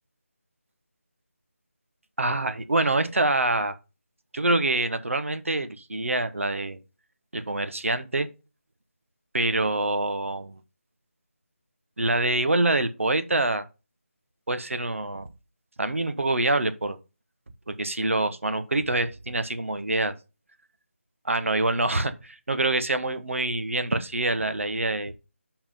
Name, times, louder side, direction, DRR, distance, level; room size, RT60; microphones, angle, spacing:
voice 1, 2.2-3.7 4.3-6.8 7.3-8.3 9.3-10.6 12.0-13.6 14.5-15.3 15.8-17.0 17.7-20.1 21.2-25.1, right 2 dB, 65° right, 1.1 m, -25 dB
5.5 x 4.8 x 5.4 m
figure-of-eight pair, 160°, 8 cm